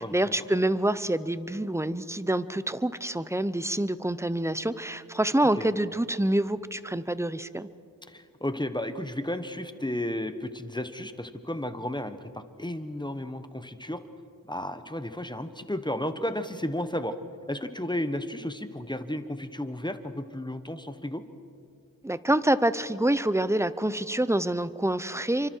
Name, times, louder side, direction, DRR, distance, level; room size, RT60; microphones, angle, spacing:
voice 1, 0.0-7.7 22.0-25.5, right 1 dB, 10° right, 14 dB, 0.7 m, -26 dB
voice 2, 8.1-14.0 14.5-17.1 17.5-21.2, left 1 dB, 15° left, 9 dB, 1.2 m, -33 dB
29.5 x 24.5 x 4.6 m, 2.4 s
wide cardioid pair, 65°, 33 cm